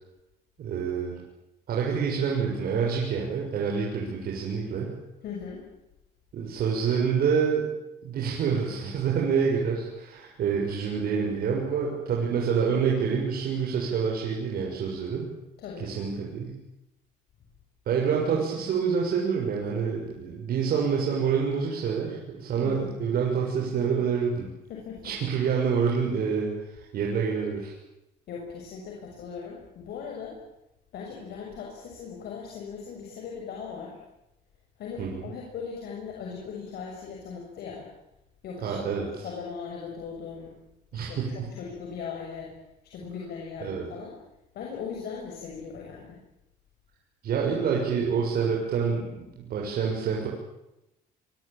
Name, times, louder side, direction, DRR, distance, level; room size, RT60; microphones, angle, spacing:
voice 1, 0.6-1.2 1.7-4.9 6.3-7.7 8.0-15.3 15.8-16.5 17.9-24.5 25.0-27.7 35.0-35.3 38.6-39.3 40.9-41.5 43.6-43.9 47.2-50.3, right 6 dB, 60° right, -2 dB, 6.8 m, -27 dB
voice 2, 5.2-5.7 15.6-15.9 22.6-23.0 24.7-25.2 28.3-30.4 30.9-34.0 34.8-37.9 38.4-40.5 40.9-42.5 42.9-44.2 44.5-46.2, left 6 dB, 70° left, -1 dB, 7.0 m, -39 dB
25.5 x 24.0 x 9.1 m, 0.91 s
cardioid pair, 110°, 17 cm